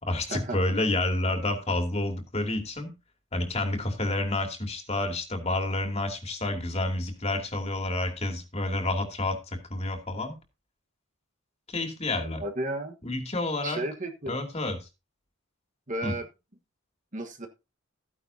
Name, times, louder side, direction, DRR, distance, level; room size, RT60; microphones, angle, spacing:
voice 1, 0.0-2.9 3.3-10.4 11.7-12.4 13.0-13.8 14.3-14.9 16.0-16.1, left 2 dB, 30° left, 4 dB, 2.6 m, -29 dB
voice 2, 12.4-13.0 13.6-14.4 15.9-16.3 17.1-17.5, right 1 dB, 35° right, 4 dB, 1.4 m, -33 dB
14.5 x 10.0 x 2.8 m, 0.26 s
head